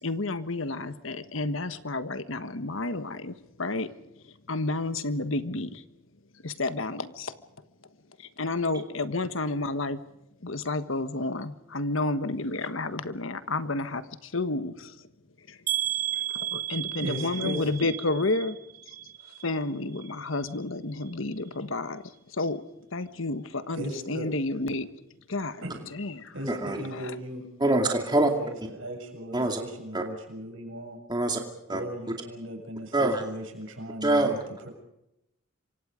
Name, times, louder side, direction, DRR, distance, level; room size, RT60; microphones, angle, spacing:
voice 1, 0.0-3.9 4.5-5.8 6.4-7.4 8.2-10.0 10.4-15.0 15.5-15.6 16.3-18.6 19.4-22.6 22.9-24.9 25.3-25.6 25.9-26.3 26.9-27.1, left 2 dB, 70° left, 12 dB, 1.4 m, -31 dB
sound 1, 15.7-19.6 19.9-20.6 21.0-21.1 21.5-21.6, right 12 dB, 40° right, 1.6 m, -33 dB
voice 2, 16.6-17.7 23.7-24.3 25.6-25.9 26.3-31.0 31.7-34.7, right 1 dB, 70° right, 3 dB, 7.0 m, -38 dB
voice 3, 26.5-26.8 27.6-28.3 29.3-29.6 29.9-30.0 31.1-31.4 31.7-31.8 32.9-33.2 34.0-34.4, right 2 dB, 20° right, 3 dB, 2.4 m, -24 dB
27.5 x 24.5 x 5.1 m, 0.85 s
head